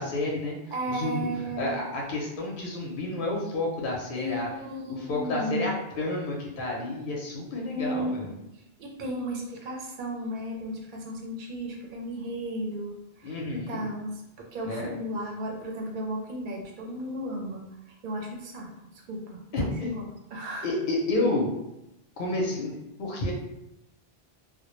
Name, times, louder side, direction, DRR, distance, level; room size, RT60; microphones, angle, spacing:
voice 1, 0.0-0.6 0.9-4.5 4.9-8.3 13.2-13.9 14.6-15.0 19.5-20.0 20.6-21.5 22.2-23.3, left 2 dB, 60° left, -2 dB, 0.7 m, -30 dB
voice 2, 0.7-1.8 4.2-5.7 7.7-8.2 8.5-19.4 19.8-20.7, right 1 dB, 60° right, 0 dB, 0.6 m, -35 dB
2.1 x 2.0 x 3.0 m, 0.87 s
omnidirectional pair, 1.1 m